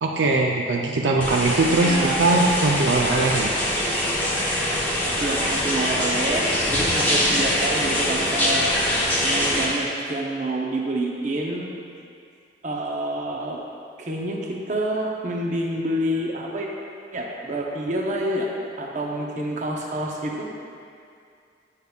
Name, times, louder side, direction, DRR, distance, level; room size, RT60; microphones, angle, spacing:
voice 1, 0.0-3.6, right 2 dB, 70° right, 1 dB, 0.4 m, -21 dB
sound 1, 1.2-9.7, left 1 dB, 10° left, 0.8 m, -23 dB
voice 2, 1.8-2.2 5.2-9.0 9.2-11.7 12.6-13.6 14.0-16.7 17.1-18.5 18.8-20.5, right 1 dB, 40° right, -1 dB, 0.7 m, -28 dB
8.2 x 6.9 x 2.3 m, 2.4 s
head